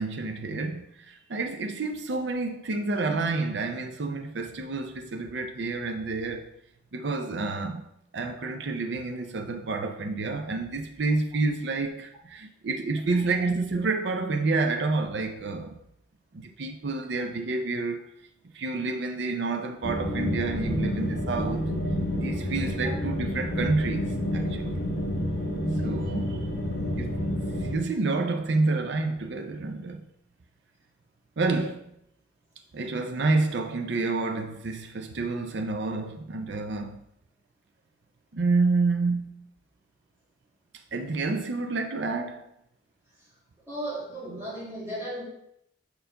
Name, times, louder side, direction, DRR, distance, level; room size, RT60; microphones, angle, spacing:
voice 1, 0.0-6.5 6.9-15.8 16.3-18.0 18.5-21.7 22.2-24.7 25.8-26.5 27.0-27.1 27.7-30.1 31.4-31.9 32.7-37.0 38.3-39.3 40.9-42.5, right 3 dB, 60° right, 0.5 m, -29 dB
sound 1, 19.8-27.8, equal, 50° left, 1.0 m, -29 dB
voice 2, 43.7-45.2, right 1 dB, 10° right, 1.9 m, -35 dB
4.4 x 3.9 x 5.5 m
head